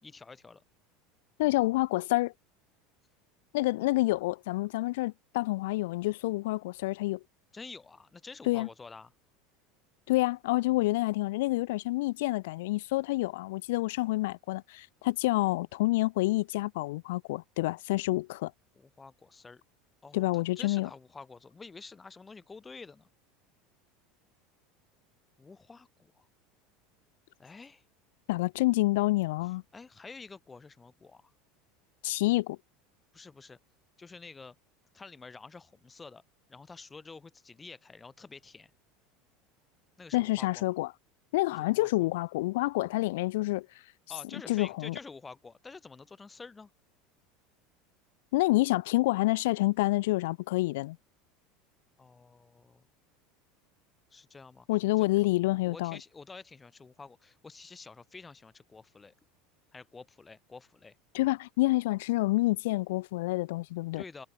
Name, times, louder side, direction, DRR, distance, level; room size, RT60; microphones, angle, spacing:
voice 1, 0.0-0.6 7.5-9.1 18.8-19.6 20.0-23.1 25.4-26.3 27.4-27.8 29.4-31.3 33.1-33.6 34.0-34.5 34.9-36.2 36.5-38.7 40.0-40.7 41.5-42.1 44.1-46.7 52.0-52.9 54.1-54.7 55.0-55.1 55.6-59.1 59.7-61.0 63.9-64.3, left 4 dB, 10° left, 4.3 m, -49 dB
voice 2, 1.4-2.3 3.5-7.2 8.5-8.7 10.1-18.5 20.1-20.9 28.3-29.6 32.0-32.6 40.1-40.9 41.3-43.7 44.5-44.9 48.3-51.0 54.7-56.0 61.1-64.0, left 19 dB, 80° left, 1.4 m, -28 dB
cardioid pair, 175°, 0 cm